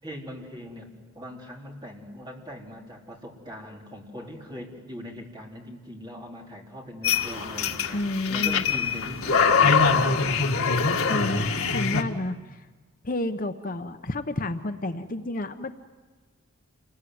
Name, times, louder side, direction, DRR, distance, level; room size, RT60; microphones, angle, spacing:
voice 1, 0.0-0.9 1.1-8.0 8.3-10.1, equal, 20° right, -1 dB, 4.0 m, -41 dB
sound 1, 7.0-12.0, left 5 dB, 75° left, 1.9 m, -23 dB
voice 2, 7.9-8.6 11.1-11.4 11.7-12.7 13.0-15.7, left 2 dB, 40° left, 8 dB, 0.8 m, -30 dB
28.0 x 21.5 x 9.4 m, 1.4 s
head